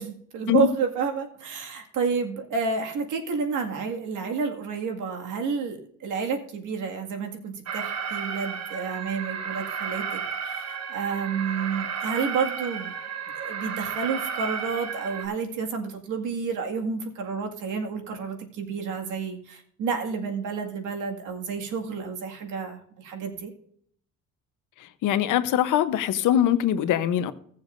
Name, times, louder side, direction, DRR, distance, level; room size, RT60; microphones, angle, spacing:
voice 1, 0.0-12.9 13.4-23.5, right 5 dB, 85° right, 3 dB, 2.1 m, -30 dB
Alarm, 7.7-15.3, right 6 dB, 60° right, 1.2 m, -33 dB
voice 2, 25.0-27.3, left 10 dB, 85° left, 12 dB, 0.9 m, -22 dB
17.5 x 7.0 x 2.6 m, 0.62 s
cardioid pair, 90°, 30 cm